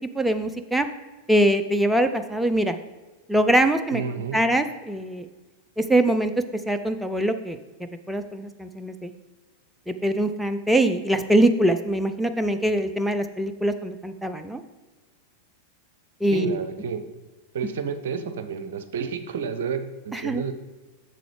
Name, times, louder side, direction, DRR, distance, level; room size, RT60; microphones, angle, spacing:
voice 1, 0.1-0.9 1.3-2.8 3.3-4.0 4.3-5.3 5.8-6.3 6.7-7.6 8.1-9.1 9.9-14.6 16.2-16.6 20.1-20.4, right 1 dB, 5° right, 8 dB, 0.4 m, -23 dB
voice 2, 3.9-4.4 16.3-17.0 17.5-20.5, right 6 dB, 60° right, 9 dB, 0.6 m, -30 dB
7.5 x 6.8 x 3.2 m, 1.2 s
figure-of-eight pair, 90°, 0 cm